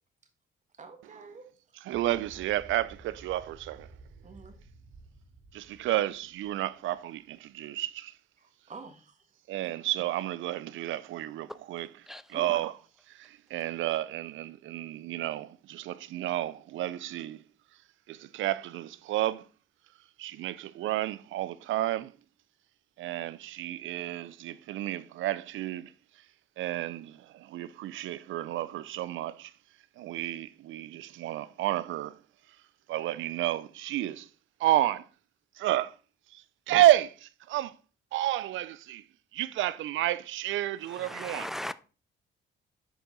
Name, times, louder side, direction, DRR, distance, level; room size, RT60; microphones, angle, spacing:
voice 1, 0.8-1.4 4.2-4.5 8.4-9.3 12.3-12.6, right 5 dB, 35° right, 1.5 m, -45 dB
voice 2, 1.8-3.9 5.5-8.1 9.5-11.9 12.3-12.7 13.1-17.4 18.1-19.4 20.2-22.1 23.0-25.9 26.6-29.5 30.0-32.2 32.9-34.3 34.6-35.1 35.6-35.9 36.3-37.7 38.1-39.0 39.3-41.5, right 14 dB, 75° right, 0.5 m, -31 dB
sound 1, 1.9-7.0, right 3 dB, 55° right, 3.0 m, -53 dB
voice 3, 40.9-41.7, left 1 dB, ahead, 0.4 m, -37 dB
7.8 x 5.1 x 3.8 m
cardioid pair, 90°, 20 cm